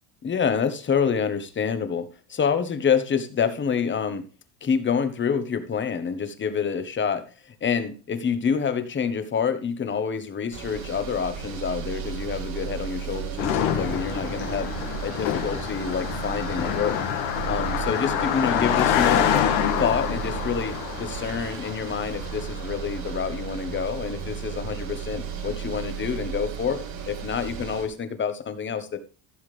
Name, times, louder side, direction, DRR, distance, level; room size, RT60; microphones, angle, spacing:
voice 1, 0.2-4.3 4.6-7.2 7.6-14.7 15.0-17.0 17.5-19.3 19.8-29.0, left 6 dB, 25° left, 9 dB, 1.3 m, -27 dB
sound 1, 10.5-27.9, right 8 dB, 85° right, 3.2 m, -34 dB
Car passing by, 13.4-22.9, left 10 dB, 80° left, 2.1 m, -27 dB
14.5 x 7.2 x 3.4 m, 0.36 s
cardioid pair, 155°, 46 cm